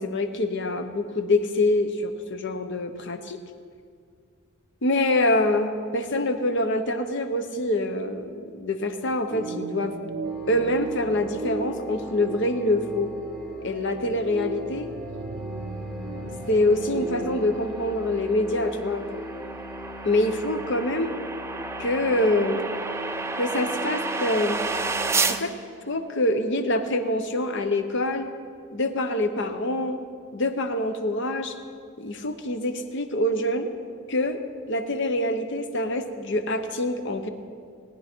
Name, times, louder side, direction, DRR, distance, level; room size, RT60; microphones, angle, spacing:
voice 1, 0.0-3.4 4.8-9.9 10.5-13.1 13.6-14.9 16.5-19.1 20.0-21.1 21.8-22.7 23.4-24.6 25.3-25.5 25.9-28.3 28.7-30.0 30.3-31.5 32.0-33.7 34.1-34.4 34.7-37.3, left 1 dB, 60° left, 8 dB, 0.9 m, -25 dB
sound 1, 9.3-17.6, right 3 dB, 85° right, 0.6 m, -36 dB
sound 2, 10.2-25.2, equal, 5° left, 1.3 m, -40 dB
sound 3, 16.7-25.4, right 4 dB, 15° right, 0.4 m, -31 dB
18.0 x 9.6 x 4.5 m, 2.2 s
head